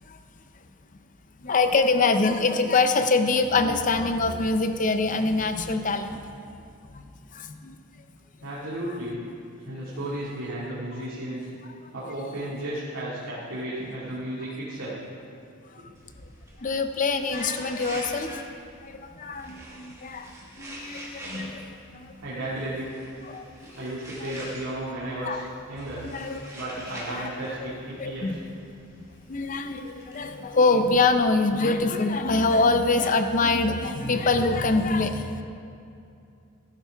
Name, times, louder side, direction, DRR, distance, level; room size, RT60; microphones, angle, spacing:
voice 1, 1.4-6.2 6.9-7.0 7.3-7.7 8.9-9.0 16.6-18.6 18.8-20.3 20.6-21.7 22.5-22.6 23.3-23.4 23.8-23.9 24.2-24.3 25.2-25.4 26.0-26.5 27.1-27.3 27.6-27.7 28.0-28.4 29.0-35.4, left 3 dB, 40° left, 8 dB, 0.6 m, -24 dB
voice 2, 8.4-9.2 9.6-11.4 11.9-14.9 15.8-15.9 22.2-23.1 23.8-25.4 25.7-26.0 26.5-28.3, right 1 dB, 80° right, -8 dB, 2.1 m, -33 dB
sound 1, 16.0-31.8, right 1 dB, 15° right, 1.6 m, -45 dB
14.5 x 11.5 x 3.5 m, 2.6 s
head